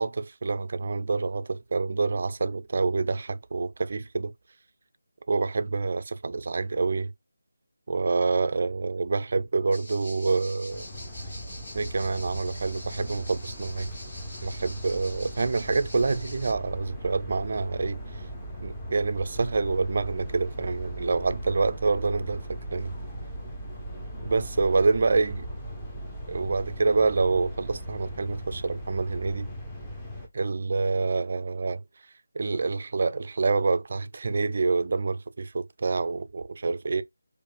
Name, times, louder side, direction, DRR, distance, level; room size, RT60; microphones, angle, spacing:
voice 1, 0.0-4.3 5.3-7.1 7.9-10.9 11.7-13.9 14.4-18.0 18.6-22.4 22.7-22.9 24.2-25.4 26.3-29.5 30.3-31.8 32.3-37.0, right 4 dB, 40° right, 0.3 m, -27 dB
sound 1, 9.7-16.5, left 1 dB, 40° left, 1.5 m, -45 dB
sound 2, 10.7-30.3, equal, 10° left, 0.6 m, -39 dB
4.5 x 2.4 x 2.3 m
figure-of-eight pair, 160°, 0 cm